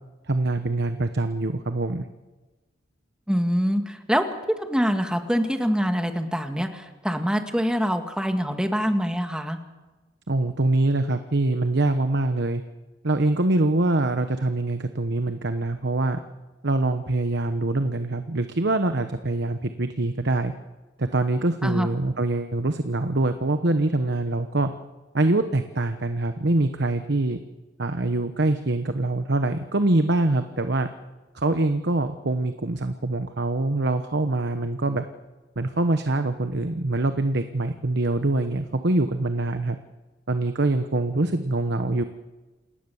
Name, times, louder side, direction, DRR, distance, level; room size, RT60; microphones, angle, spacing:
voice 1, 0.3-2.0 10.3-12.6 13.0-16.2 16.6-20.5 21.0-24.7 25.1-27.4 27.8-30.9 31.3-35.0 35.6-39.8 40.3-42.0, right 2 dB, 60° right, 8 dB, 1.1 m, -24 dB
voice 2, 3.3-4.2 4.6-9.6 21.6-21.9, equal, 5° right, 6 dB, 1.9 m, -25 dB
28.0 x 19.0 x 7.2 m, 1.2 s
head